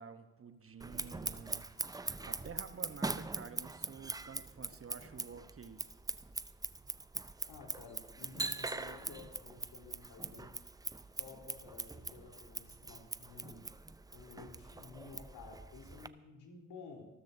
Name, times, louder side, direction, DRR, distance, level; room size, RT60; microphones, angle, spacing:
voice 1, 0.0-1.7 2.0-5.8, right 6 dB, 30° right, 9 dB, 1.0 m, -50 dB
Scissors, 0.8-16.1, right 3 dB, 10° right, 0.5 m, -42 dB
voice 2, 7.5-10.5 11.2-13.7 14.1-17.1, left 4 dB, 60° left, 0 dB, 4.0 m, -53 dB
26.5 x 13.0 x 2.7 m, 1.1 s
hypercardioid pair, 55°, 45 cm